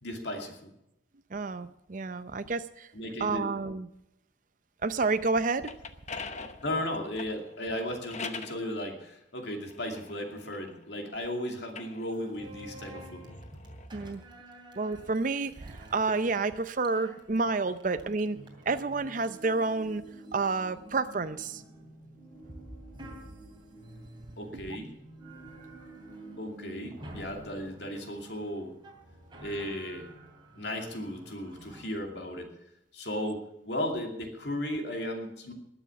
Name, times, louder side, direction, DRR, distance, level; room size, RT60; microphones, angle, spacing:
voice 1, 0.0-0.7 2.9-3.5 6.3-13.2 24.4-25.0 26.4-28.7 29.4-30.1 30.5-32.5 32.9-35.5, left 1 dB, 60° left, 3 dB, 2.6 m, -35 dB
voice 2, 1.3-2.9 3.2-3.9 4.8-5.7 13.9-14.2 14.8-18.4 18.7-20.0 20.3-21.6 24.5-24.6, right 3 dB, 40° right, 11 dB, 0.6 m, -29 dB
sound 1, 5.4-8.6 9.4-11.1 11.6-13.9, left 5 dB, 35° left, 0.9 m, -44 dB
sound 2, 12.1-20.6 21.0-21.7 22.4-24.8 25.2-26.4 26.7-31.8, right 1 dB, 25° right, 2.8 m, -50 dB
sound 3, 18.2-27.0, right 2 dB, 5° left, 4.5 m, -50 dB
20.5 x 7.1 x 7.0 m, 0.83 s
head